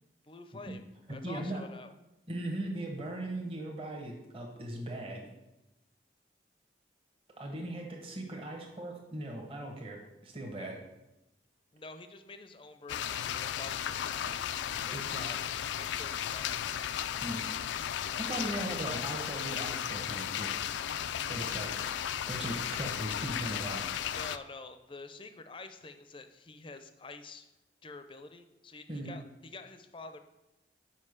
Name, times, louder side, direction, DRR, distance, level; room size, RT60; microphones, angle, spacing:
voice 1, 0.2-0.8 1.1-1.9 11.7-14.3 14.9-15.4 15.7-16.6 24.1-27.5 27.8-30.2, left 3 dB, 30° left, 9 dB, 0.5 m, -47 dB
voice 2, 1.2-1.6 2.3-5.3 7.4-10.8 14.3-14.4 14.9-15.3 17.2-17.5 18.2-20.5 21.3-21.9 22.3-23.9 28.9-29.2, right 1 dB, 30° right, 0 dB, 1.1 m, -39 dB
sound 1, 12.9-24.4, left 10 dB, 80° left, 0.3 m, -35 dB
5.5 x 5.1 x 6.5 m, 0.95 s
head